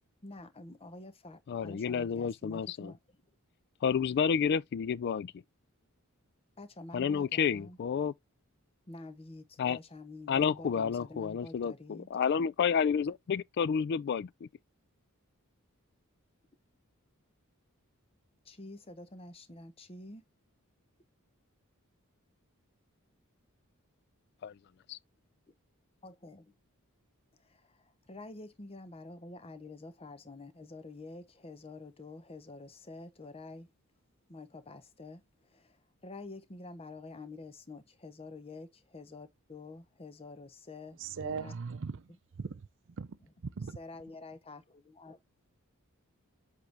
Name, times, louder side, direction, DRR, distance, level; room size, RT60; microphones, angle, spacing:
voice 1, 0.2-3.2 6.6-7.8 8.9-12.1 18.4-20.2 26.0-26.5 27.4-33.7 34.3-41.5 43.2-43.3 43.8-45.2, left 2 dB, 25° left, 0.8 m, -48 dB
voice 2, 1.5-2.9 3.8-5.3 6.9-8.1 9.6-9.8 10.3-14.5 24.4-24.5 24.9-25.0, left 7 dB, 50° left, 0.3 m, -30 dB
voice 3, 41.0-42.7 43.0-43.8, right 5 dB, 60° right, 0.5 m, -39 dB
7.8 x 3.7 x 3.3 m
head